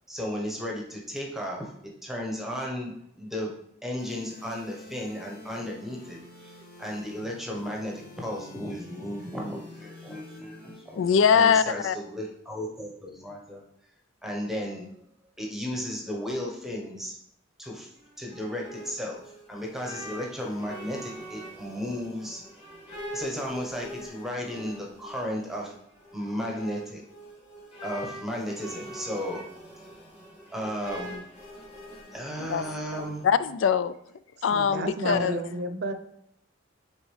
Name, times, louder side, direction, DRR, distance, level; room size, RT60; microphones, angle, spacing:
voice 1, 0.1-3.6 3.8-11.0 11.3-13.6 14.2-14.9 15.4-17.2 17.6-17.9 18.2-22.4 23.1-25.7 26.1-27.0 27.8-29.4 29.8-29.9 30.5-31.2 32.1-33.3 35.1-35.3, equal, ahead, -1 dB, 1.0 m, -34 dB
sound 1, 4.0-12.0, left 2 dB, 50° left, 1.4 m, -48 dB
voice 2, 11.0-11.9 32.5-32.6 33.2-34.0 34.4-35.4, left 7 dB, 70° left, 15 dB, 0.3 m, -22 dB
sound 2, 17.9-33.3, right 1 dB, 30° left, 2.5 m, -43 dB
voice 3, 34.5-35.9, right 1 dB, 55° right, 8 dB, 0.6 m, -31 dB
9.0 x 3.6 x 3.3 m, 0.72 s
head